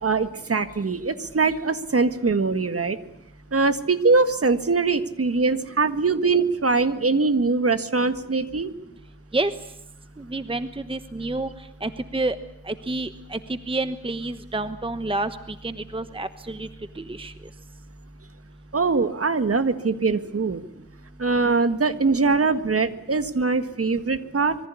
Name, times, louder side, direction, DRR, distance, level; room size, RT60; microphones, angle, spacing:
voice 1, 0.0-3.0 3.5-8.7 18.7-20.6 21.2-24.6, right 4 dB, 40° right, 10 dB, 1.7 m, -22 dB
voice 2, 10.2-11.5 11.8-12.4 12.7-16.7 17.0-17.3, right 2 dB, 15° right, 11 dB, 1.1 m, -29 dB
26.0 x 23.0 x 8.5 m, 0.81 s
wide cardioid pair, 105°, 35 cm